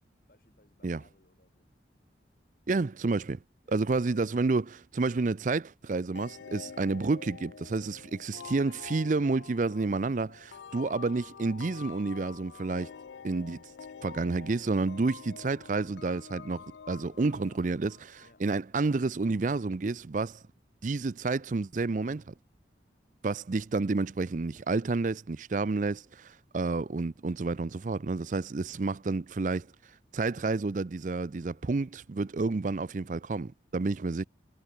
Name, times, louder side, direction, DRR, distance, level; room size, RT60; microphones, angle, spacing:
voice 1, 0.3-1.7 3.6-3.8 4.3-4.8 8.4-8.8 18.2-18.4, left 1 dB, 50° left, 4.6 m, -62 dB
voice 2, 2.7-3.4 3.7-4.6 5.0-12.9 13.2-13.6 14.0-20.4 20.8-22.3 23.2-29.7 30.1-34.2, right 3 dB, 45° right, 0.5 m, -30 dB
sound 1, 6.1-18.6, left 6 dB, 80° left, 0.4 m, -48 dB
head